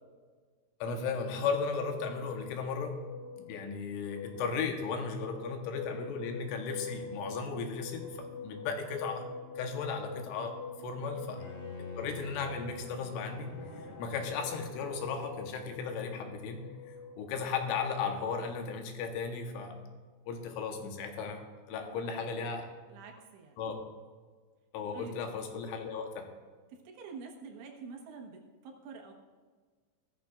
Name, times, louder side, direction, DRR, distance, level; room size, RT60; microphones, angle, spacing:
voice 1, 0.8-3.0 3.4-11.5 12.0-13.5 14.0-16.7 17.2-19.8 20.3-21.4 21.7-22.6 23.6-23.8 24.7-26.3, left 5 dB, 80° left, 4 dB, 3.5 m, -35 dB
sound 1, 0.9-17.4, left 4 dB, 45° left, 0.9 m, -46 dB
Bowed string instrument, 11.4-16.2, left 3 dB, 65° left, 3.8 m, -48 dB
voice 2, 21.7-23.6 24.9-25.2 26.7-29.1, right 5 dB, 75° right, 1 dB, 3.5 m, -48 dB
16.5 x 12.5 x 2.4 m, 1.5 s
omnidirectional pair, 5.6 m